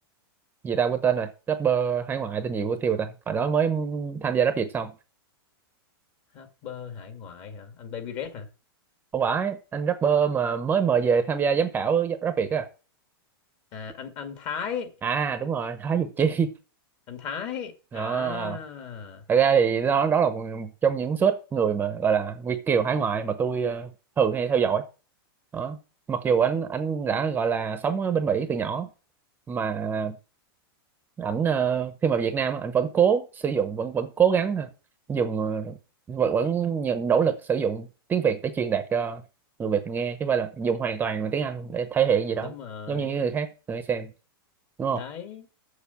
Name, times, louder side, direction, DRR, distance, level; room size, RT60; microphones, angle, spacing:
voice 1, 0.6-4.9 9.1-12.7 15.0-16.5 17.9-18.6 19.3-23.9 24.2-24.8 25.5-25.8 26.1-28.9 29.5-30.2 31.2-34.7 35.1-35.8 36.1-39.2 39.6-42.5 42.9-44.1 44.8-45.0, right 7 dB, 15° right, 0.8 m, -25 dB
voice 2, 6.3-8.5 13.7-14.9 17.1-19.2 42.4-43.2 44.9-45.5, left 7 dB, 40° left, 2.0 m, -36 dB
7.1 x 6.8 x 6.9 m
supercardioid pair, 145°, 13 cm